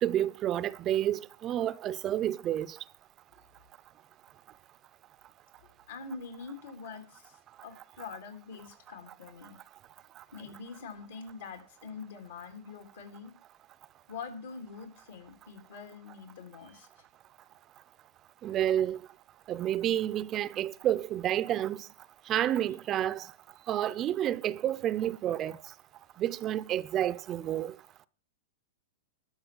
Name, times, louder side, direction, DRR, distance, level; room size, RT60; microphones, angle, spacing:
voice 1, 0.0-2.7 18.4-19.0 19.5-21.8 22.3-23.2 23.7-25.5 26.2-27.7, right 11 dB, 30° right, 0.5 m, -29 dB
voice 2, 5.9-7.3 7.6-9.6 10.3-13.3 14.1-16.9, left 5 dB, 80° left, 3.4 m, -44 dB
12.0 x 5.6 x 7.9 m
hypercardioid pair, 140°, 0 cm